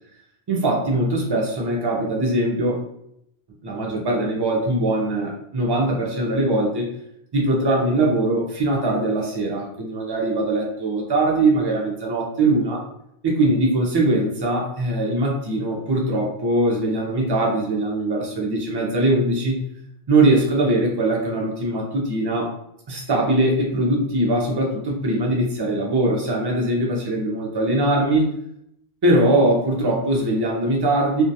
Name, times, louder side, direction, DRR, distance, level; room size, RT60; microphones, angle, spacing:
voice 1, 0.5-2.8 3.6-6.9 7.3-12.8 13.2-19.6 20.1-22.5 22.9-28.3 29.0-31.2, right 2 dB, 35° right, -1 dB, 0.4 m, -21 dB
2.3 x 2.2 x 2.6 m, 0.75 s
omnidirectional pair, 1.1 m